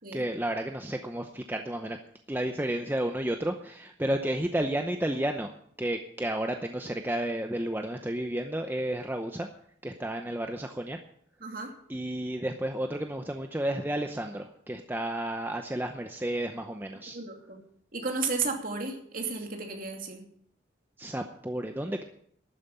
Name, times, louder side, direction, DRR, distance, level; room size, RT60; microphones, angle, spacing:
voice 1, 0.1-2.0 2.3-5.5 5.8-9.5 9.8-11.0 11.9-17.2 21.0-22.0, right 1 dB, 10° right, 5 dB, 0.7 m, -32 dB
voice 2, 11.4-11.7 17.1-17.6 17.9-20.2, right 4 dB, 45° right, 2 dB, 2.8 m, -33 dB
12.5 x 9.2 x 8.4 m, 0.66 s
head